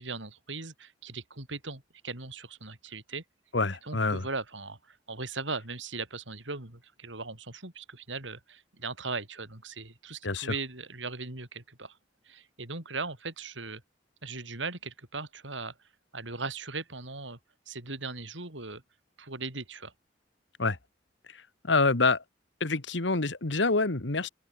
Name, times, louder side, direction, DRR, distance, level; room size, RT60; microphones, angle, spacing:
voice 1, 0.0-3.2 3.8-12.0 12.3-13.8 14.2-15.7 16.1-17.4 17.7-18.8 19.2-19.9, right 3 dB, 85° right, 5.4 m, -38 dB
voice 2, 3.5-4.2 10.2-10.5 20.6-20.8 21.6-22.2 22.6-24.3, left 3 dB, 75° left, 1.7 m, -26 dB
open air
head